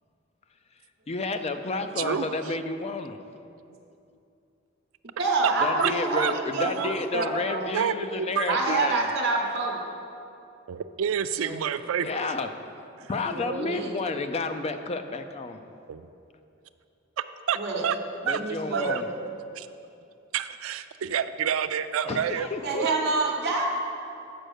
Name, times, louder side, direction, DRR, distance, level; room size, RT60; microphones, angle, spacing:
voice 1, 1.1-3.2 5.6-9.1 12.0-12.5 13.1-15.6 18.2-19.1 22.1-23.1, left 3 dB, 30° left, 8 dB, 0.4 m, -31 dB
voice 2, 2.0-2.3 5.8-5.9 6.2-6.3 6.6-6.9 7.7-8.8 10.7-12.3 13.0-13.1 15.9-16.1 17.2-18.0 18.3-18.4 18.7-19.0 19.6-19.7 20.3-22.5 22.7-23.0, right 8 dB, 90° right, 12 dB, 0.4 m, -29 dB
voice 3, 5.0-7.7 8.4-9.8 11.4-11.6 13.2-13.9 17.5-17.9 18.3-19.0 22.6-23.7, right 3 dB, 55° right, -2 dB, 1.0 m, -27 dB
7.7 x 5.2 x 6.4 m, 2.6 s
head